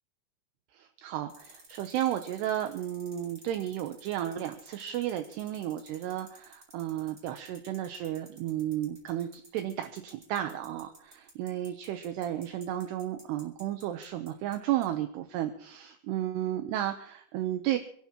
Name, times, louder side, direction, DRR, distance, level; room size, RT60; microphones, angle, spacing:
voice 1, 0.7-17.8, right 12 dB, 75° right, 7 dB, 2.8 m, -33 dB
sound 1, 1.3-14.6 14.8-14.9, right 1 dB, 25° right, 3.3 m, -53 dB
27.5 x 12.0 x 3.0 m, 0.63 s
omnidirectional pair, 5.2 m